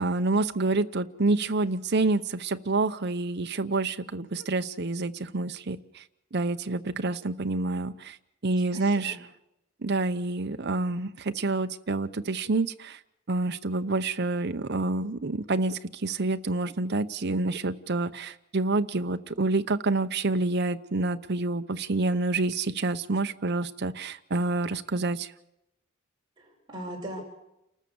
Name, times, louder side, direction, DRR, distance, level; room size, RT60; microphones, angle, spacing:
voice 1, 0.0-6.0 6.3-8.2 8.4-9.2 9.8-13.0 13.3-25.3, right 3 dB, 50° right, 9 dB, 0.8 m, -28 dB
voice 2, 8.7-9.2 26.4-27.2, right 1 dB, 20° right, -2 dB, 6.1 m, -39 dB
29.0 x 14.0 x 7.1 m, 0.87 s
head